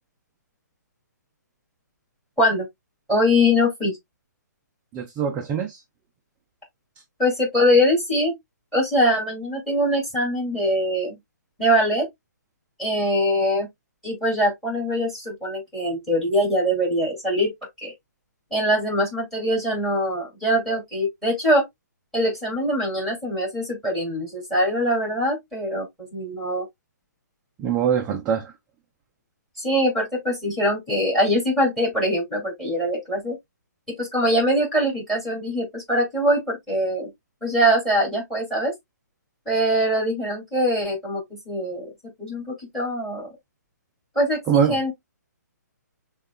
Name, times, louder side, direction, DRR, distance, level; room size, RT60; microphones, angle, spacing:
voice 1, 3.1-4.0 7.2-8.3 8.7-11.2 11.6-12.1 12.8-13.7 14.0-17.5 17.8-17.9 18.5-21.6 22.1-25.9 26.1-26.7 29.6-33.4 33.9-37.1 37.4-38.7 39.5-41.9 42.2-43.3 44.1-44.9, equal, 5° left, 2.6 m, -23 dB
voice 2, 4.9-5.8 27.6-28.5 44.5-44.9, right 7 dB, 15° right, 0.4 m, -23 dB
6.3 x 2.4 x 2.2 m
hypercardioid pair, 155°, 10 cm